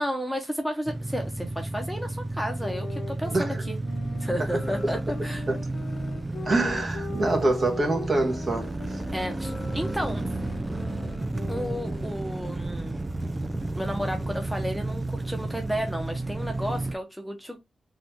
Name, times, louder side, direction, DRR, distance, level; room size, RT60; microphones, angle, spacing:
voice 1, 0.0-3.8 4.2-5.5 9.1-10.2 11.5-13.0 13.7-17.6, equal, ahead, 1.0 m, -32 dB
sound 1, 0.9-16.9, right 2 dB, 20° right, 0.4 m, -32 dB
sound 2, 2.6-12.3, left 5 dB, 70° left, 1.1 m, -41 dB
voice 2, 6.4-9.0, right 2 dB, 35° right, 1.3 m, -25 dB
4.0 x 2.6 x 4.6 m
wide cardioid pair, 115°, 0 cm